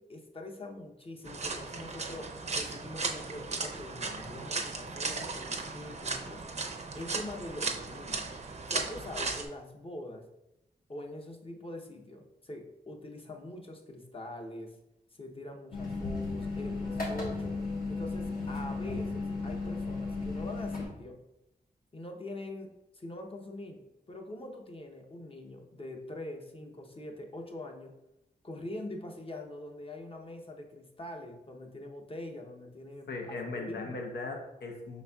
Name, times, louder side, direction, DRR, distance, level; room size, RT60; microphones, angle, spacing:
voice 1, 0.0-6.4 6.9-8.3 8.7-10.2 10.9-14.7 15.1-17.6 17.9-21.2 21.9-28.0 28.4-34.1, left 1 dB, 35° left, 2 dB, 0.7 m, -44 dB
sound 1, 1.2-9.4, right 3 dB, 45° right, 0.5 m, -36 dB
sound 2, 15.7-20.9, left 3 dB, 65° left, 1.3 m, -35 dB
voice 2, 33.1-35.0, left 3 dB, 85° left, 2 dB, 0.7 m, -38 dB
5.2 x 4.0 x 2.3 m, 0.90 s
cardioid pair, 75°, 17 cm